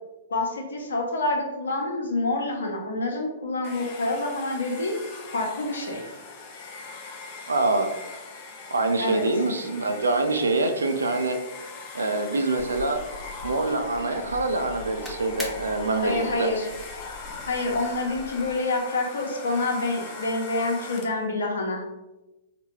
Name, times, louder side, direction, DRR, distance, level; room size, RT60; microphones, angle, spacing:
voice 1, 0.3-4.9 5.3-6.0 9.0-9.3 16.0-16.7 17.5-21.8, left 2 dB, 70° left, 1 dB, 0.8 m, -27 dB
Domestic sounds home sounds, 3.6-21.3, left 4 dB, 40° left, 0.5 m, -41 dB
voice 2, 7.5-7.9 8.7-11.4 11.9-13.0 13.4-16.5, right 2 dB, 80° right, 6 dB, 0.4 m, -25 dB
sound 1, 12.6-18.5, left 3 dB, 10° left, 0.8 m, -42 dB
4.0 x 2.2 x 3.0 m, 1.0 s
figure-of-eight pair, 110°, 0 cm